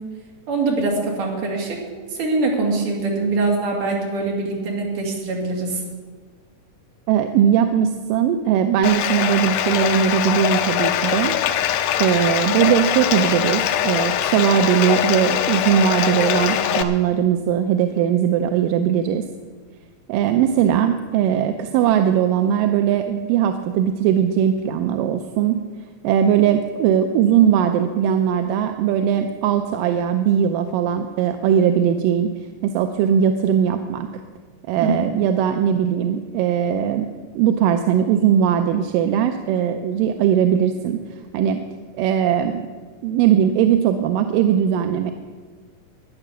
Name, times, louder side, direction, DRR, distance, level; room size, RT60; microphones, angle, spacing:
voice 1, 0.5-5.8 34.8-35.0, right 3 dB, 65° right, -1 dB, 4.0 m, -23 dB
voice 2, 7.1-11.4 12.0-19.2 20.1-25.6 26.0-32.3 32.6-34.1 34.7-37.1 37.4-41.0 41.3-41.6 42.0-42.7 43.0-45.1, right 9 dB, 85° right, 7 dB, 2.2 m, -19 dB
Bathtub (filling or washing), 8.8-16.8, left 10 dB, 80° left, 2.3 m, -22 dB
13.5 x 10.0 x 7.0 m, 1.5 s
omnidirectional pair, 4.0 m